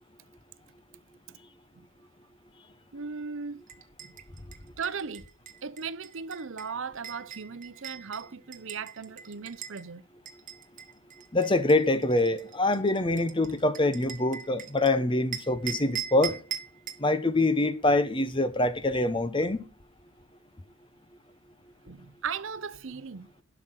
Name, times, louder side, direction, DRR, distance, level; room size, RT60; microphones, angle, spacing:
voice 1, 2.9-3.6 4.1-4.2 4.8-5.3 5.6-10.0 21.8-23.3, right 5 dB, 65° right, 0.7 m, -37 dB
sound 1, 3.7-9.8 10.3-14.9 15.3-17.1, right 9 dB, 35° right, 1.0 m, -41 dB
voice 2, 11.3-16.3 17.0-19.6, left 2 dB, 25° left, 0.8 m, -25 dB
11.5 x 6.1 x 6.2 m
head